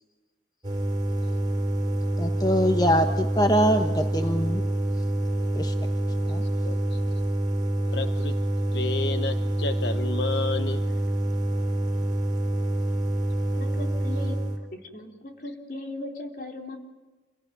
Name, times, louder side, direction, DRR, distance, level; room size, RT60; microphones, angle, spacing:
sound 1, 0.6-14.6, right 1 dB, 25° right, 4.2 m, -26 dB
voice 1, 2.2-4.6 5.5-5.7 6.3-6.4, equal, 20° left, 5 dB, 1.3 m, -23 dB
voice 2, 6.6-7.0 7.9-8.4 8.7-10.8, left 3 dB, 70° left, 8 dB, 1.0 m, -31 dB
voice 3, 13.6-14.4 14.7-16.8, left 1 dB, 50° left, 3 dB, 3.8 m, -37 dB
28.5 x 17.5 x 9.4 m, 1.2 s
head